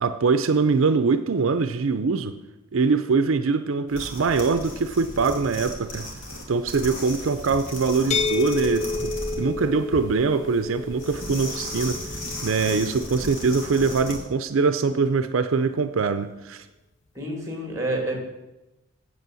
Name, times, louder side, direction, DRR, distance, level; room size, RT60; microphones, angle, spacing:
voice 1, 0.0-2.3 2.7-6.1 6.5-12.0 12.4-16.7, right 4 dB, 75° right, 10 dB, 0.5 m, -23 dB
sound 1, 3.9-14.2, left 1 dB, 75° left, 2.5 m, -36 dB
sound 2, 8.1-13.9, left 4 dB, 35° left, 0.4 m, -31 dB
voice 2, 17.1-18.2, right 1 dB, 15° right, 2 dB, 2.4 m, -28 dB
8.2 x 7.6 x 7.6 m, 1.0 s
head